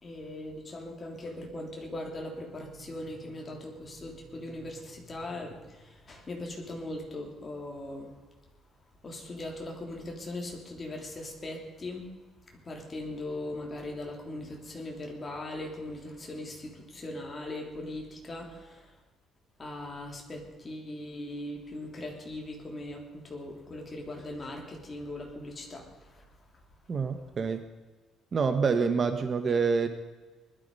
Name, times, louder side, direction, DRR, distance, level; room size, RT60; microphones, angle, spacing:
voice 1, 0.0-8.1 9.0-12.1 12.5-18.9 19.6-26.2, left 1 dB, 20° left, 1 dB, 3.1 m, -40 dB
voice 2, 26.9-27.6 28.3-29.9, right 5 dB, 30° right, 8 dB, 0.9 m, -27 dB
20.0 x 12.5 x 5.4 m, 1.3 s
cardioid pair, 160°, 0 cm